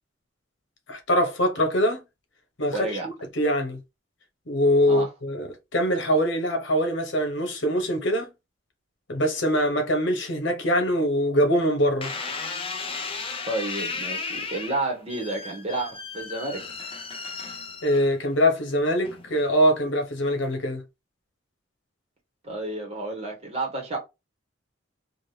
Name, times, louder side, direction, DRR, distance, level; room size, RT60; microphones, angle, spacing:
voice 1, 0.9-2.0 2.6-3.8 4.5-8.3 9.1-12.1 17.8-20.8, equal, 70° left, 1.0 m, -23 dB
voice 2, 2.7-3.1 4.9-5.1 13.5-16.6 22.4-24.0, right 2 dB, 30° right, 1.3 m, -30 dB
sound 1, 12.0-18.4 19.0-19.5, left 4 dB, 30° left, 0.4 m, -35 dB
3.3 x 2.6 x 2.7 m
head